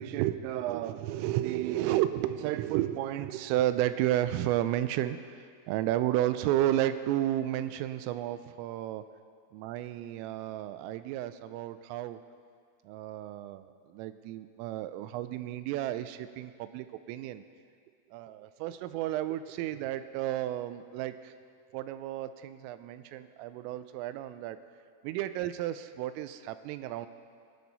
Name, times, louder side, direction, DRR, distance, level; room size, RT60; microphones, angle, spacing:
voice 1, 0.0-9.0 9.5-12.2 12.9-17.4 18.1-21.3 21.7-24.6 25.0-27.1, right 13 dB, 85° right, 11 dB, 3.2 m, -32 dB
24.0 x 10.5 x 4.1 m, 2.1 s
omnidirectional pair, 5.8 m